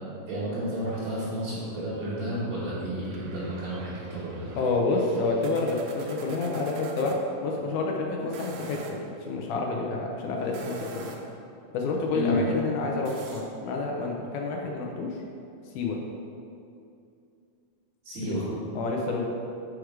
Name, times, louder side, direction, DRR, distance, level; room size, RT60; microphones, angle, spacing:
voice 1, 0.3-4.6 12.1-12.3 18.0-18.5, equal, 60° right, -12 dB, 2.6 m, -31 dB
sound 1, 3.1-7.2 8.2-9.0 10.4-11.4 13.1-13.4, right 4 dB, 85° right, 2.4 m, -45 dB
voice 2, 4.6-11.1 11.7-15.2 15.7-16.0 18.2-18.4 18.8-19.2, left 3 dB, 75° left, 0 dB, 2.0 m, -29 dB
6.3 x 5.0 x 4.7 m, 2.6 s
omnidirectional pair, 3.9 m